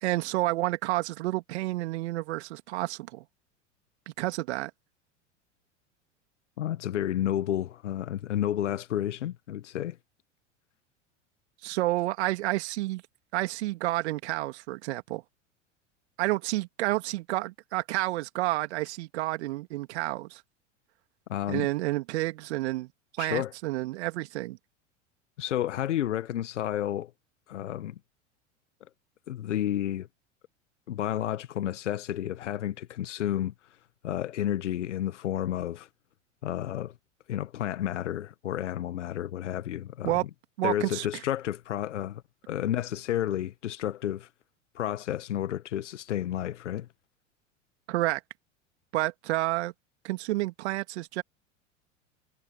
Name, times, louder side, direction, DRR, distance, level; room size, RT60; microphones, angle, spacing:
voice 1, 0.0-3.2 4.1-4.7 11.6-13.0 13.3-15.2 16.2-20.4 21.5-22.9 23.2-24.6 40.0-40.2 40.6-41.1 47.9-48.2 48.9-49.7 50.0-51.2, right 18 dB, 60° right, 2.5 m, -30 dB
voice 2, 6.6-10.0 21.3-21.7 23.2-23.5 25.4-27.1 27.5-28.0 29.3-30.1 30.9-33.5 34.0-35.9 36.4-36.9 37.3-40.2 40.6-44.3 44.7-46.9, left 11 dB, 70° left, 1.3 m, -31 dB
figure-of-eight pair, 85°, 37 cm